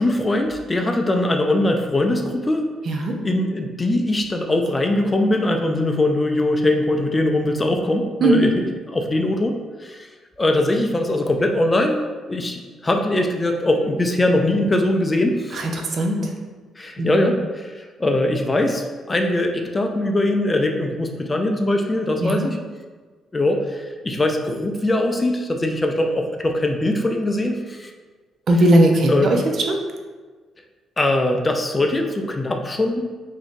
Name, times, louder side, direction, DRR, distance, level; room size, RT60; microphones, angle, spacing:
voice 1, 0.0-2.7 3.2-8.6 8.9-10.1 10.4-12.0 12.3-15.7 16.8-22.6 23.3-27.9 29.1-29.4 31.0-33.0, left 1 dB, 20° left, 4 dB, 0.4 m, -21 dB
voice 2, 15.5-16.3 17.0-17.3 22.2-22.5 28.5-29.4 29.7-29.8, right 1 dB, 55° right, 2 dB, 0.6 m, -18 dB
3.4 x 2.7 x 3.6 m, 1.4 s
cardioid pair, 90°, 0 cm